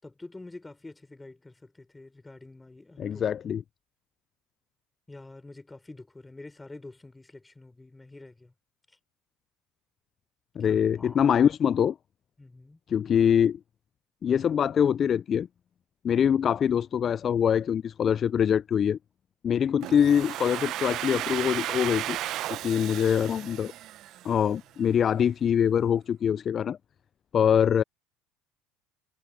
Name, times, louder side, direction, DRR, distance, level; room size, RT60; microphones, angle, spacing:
voice 1, 0.0-3.2 5.1-8.5 10.6-11.2 12.4-12.8 19.6-19.7 27.5-27.6, left 2 dB, 15° left, 6.0 m, -47 dB
voice 2, 3.0-3.6 10.6-12.0 12.9-13.6 14.2-15.5 16.0-19.0 19.4-22.2 22.5-23.7 24.2-26.8 27.3-27.8, left 8 dB, 40° left, 0.3 m, -24 dB
Domestic sounds home sounds, 19.8-24.6, right 14 dB, 60° right, 0.7 m, -34 dB
supercardioid pair, 85°, 0 cm